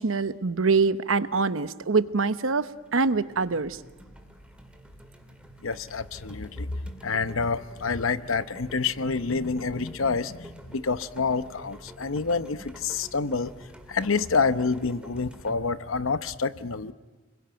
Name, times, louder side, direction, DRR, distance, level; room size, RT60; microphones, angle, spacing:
voice 1, 0.0-2.7 2.9-3.8, right 4 dB, 80° right, 12 dB, 0.9 m, -24 dB
sound 1, 2.4-2.6 2.9-15.5, right 1 dB, 5° right, 2.0 m, -49 dB
voice 2, 5.6-13.5 13.9-16.9, left 4 dB, 80° left, 12 dB, 0.9 m, -28 dB
30.0 x 21.5 x 9.0 m, 1.4 s
head